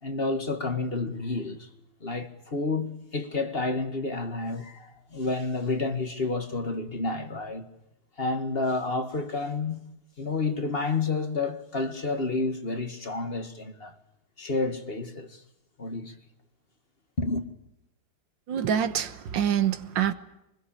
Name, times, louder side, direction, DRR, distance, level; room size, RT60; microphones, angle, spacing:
voice 1, 0.0-1.7 2.0-7.7 8.2-9.8 10.2-13.9 14.4-15.4 15.8-16.1 17.2-17.5, left 3 dB, 35° left, 1.9 m, -30 dB
voice 2, 18.5-20.1, right 9 dB, 90° right, 1.9 m, -26 dB
24.5 x 20.5 x 8.8 m
omnidirectional pair, 1.9 m